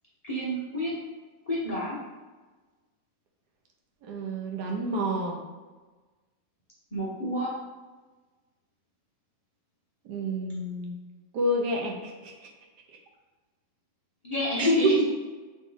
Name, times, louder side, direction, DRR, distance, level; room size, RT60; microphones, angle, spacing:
voice 1, 0.2-0.9 1.5-2.0 6.9-7.5 14.2-15.0, left 2 dB, 40° left, -8 dB, 0.5 m, -27 dB
voice 2, 4.0-5.4 10.0-11.0 11.3-12.3 14.6-14.9, right 2 dB, 65° right, 1 dB, 1.2 m, -29 dB
4.1 x 3.1 x 3.9 m, 1.3 s
omnidirectional pair, 2.1 m